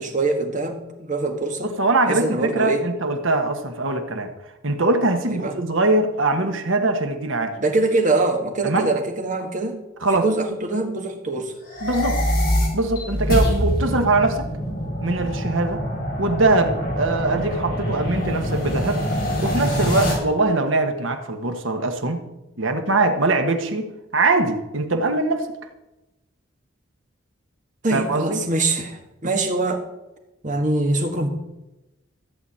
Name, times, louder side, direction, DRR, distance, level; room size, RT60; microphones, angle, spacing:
voice 1, 0.0-1.7 2.1-2.9 5.3-5.5 7.6-9.8 10.1-11.6 27.8-29.8 30.4-31.3, right 2 dB, 40° right, 4 dB, 1.6 m, -23 dB
voice 2, 1.6-4.3 4.6-7.5 8.6-8.9 10.0-10.2 11.8-12.3 12.7-14.4 15.0-15.8 16.2-19.0 19.4-22.3 22.6-23.9 24.1-25.5 27.9-28.4, right 2 dB, 75° right, 6 dB, 1.3 m, -22 dB
sound 1, 11.6-20.1, equal, 45° left, 5.0 m, -24 dB
14.5 x 4.8 x 8.6 m, 0.97 s
head